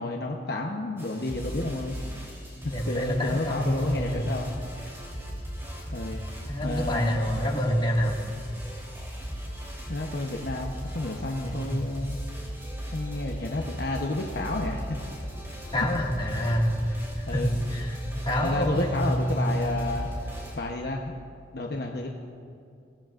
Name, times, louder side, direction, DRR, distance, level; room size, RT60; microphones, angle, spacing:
voice 1, 0.0-2.0 2.6-4.5 5.9-6.2 6.6-7.2 9.9-12.2 12.9-15.0 15.8-15.9 17.3-17.5 18.4-21.1 21.5-22.1, left 2 dB, 60° left, 0 dB, 0.9 m, -31 dB
sound 1, 1.0-20.6, equal, 15° right, 3.3 m, -37 dB
voice 2, 2.7-4.3 6.5-8.2 11.4-11.7 15.7-18.0 18.2-19.5, equal, 30° left, -3 dB, 2.0 m, -27 dB
24.5 x 16.0 x 2.5 m, 2.4 s
head